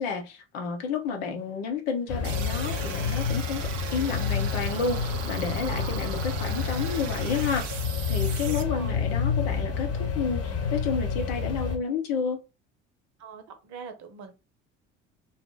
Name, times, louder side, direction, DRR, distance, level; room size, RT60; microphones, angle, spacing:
voice 1, 0.0-3.6 3.9-7.8 8.1-12.4, left 5 dB, 65° left, 0.9 m, -31 dB
sound 1, 2.1-11.8, left 6 dB, 40° left, 1.1 m, -29 dB
sound 2, 2.2-8.6, right 7 dB, 80° right, 0.5 m, -38 dB
voice 2, 5.5-6.0 8.7-9.0 13.2-14.4, right 6 dB, 50° right, 0.8 m, -43 dB
2.8 x 2.1 x 3.7 m
figure-of-eight pair, 60°, 37 cm